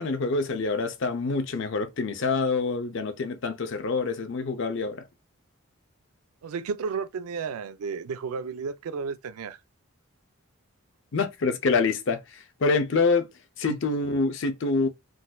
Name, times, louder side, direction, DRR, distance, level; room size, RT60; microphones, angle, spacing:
voice 1, 0.0-5.0 11.1-13.3 13.6-14.9, left 4 dB, 55° left, 0.5 m, -26 dB
voice 2, 6.4-9.6 13.7-13.8, right 5 dB, 80° right, 0.4 m, -33 dB
3.8 x 2.5 x 2.3 m
head